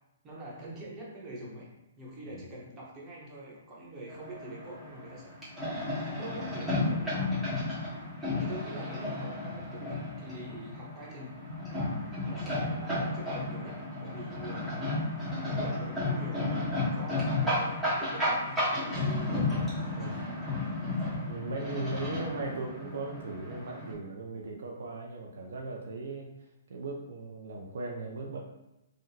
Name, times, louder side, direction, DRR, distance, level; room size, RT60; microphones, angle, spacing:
voice 1, 0.2-1.7 2.0-5.5 6.1-7.3 8.3-11.4 12.2-14.8 15.4-19.5, right 1 dB, 20° right, -5 dB, 1.0 m, -44 dB
sound 1, 4.1-23.9, left 2 dB, ahead, 1.1 m, -33 dB
voice 2, 21.2-28.4, right 3 dB, 70° right, 0 dB, 0.4 m, -38 dB
3.7 x 2.1 x 2.7 m, 0.90 s
hypercardioid pair, 135°, 0 cm